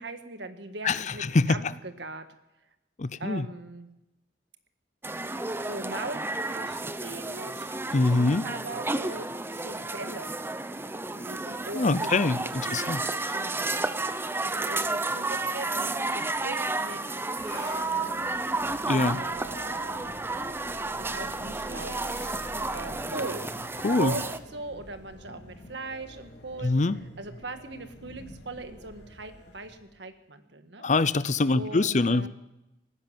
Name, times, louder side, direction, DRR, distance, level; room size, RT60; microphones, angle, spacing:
voice 1, 0.0-2.3 3.2-3.9 5.6-7.7 8.4-10.3 11.1-12.4 12.6-13.9 14.4-18.4 19.0-20.6 20.9-22.0 22.7-23.5 23.9-26.7 27.2-30.8 31.5-32.3, right 2 dB, 80° right, 8 dB, 1.6 m, -40 dB
voice 2, 0.8-1.6 3.0-3.5 7.9-8.5 11.7-13.0 18.9-19.2 23.8-24.1 26.6-27.0 30.8-32.3, left 3 dB, 40° left, 17 dB, 0.6 m, -24 dB
sound 1, 5.0-24.4, right 2 dB, 15° right, 0.6 m, -32 dB
sound 2, 17.3-30.0, left 1 dB, 80° left, 3.2 m, -47 dB
18.0 x 10.5 x 7.4 m, 0.91 s
head